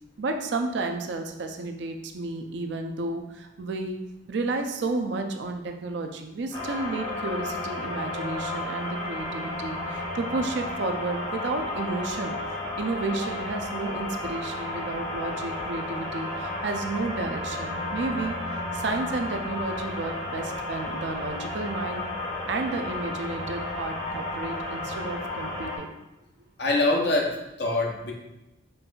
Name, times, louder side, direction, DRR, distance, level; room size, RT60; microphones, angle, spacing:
voice 1, 0.2-4.0 4.3-12.4 12.8-22.1 22.5-25.9, right 3 dB, 65° right, 5 dB, 0.4 m, -32 dB
sound 1, 6.5-25.8, left 2 dB, 20° left, 1.0 m, -33 dB
voice 2, 26.6-28.1, left 2 dB, 55° left, -1 dB, 0.7 m, -24 dB
5.2 x 2.4 x 2.3 m, 0.96 s
head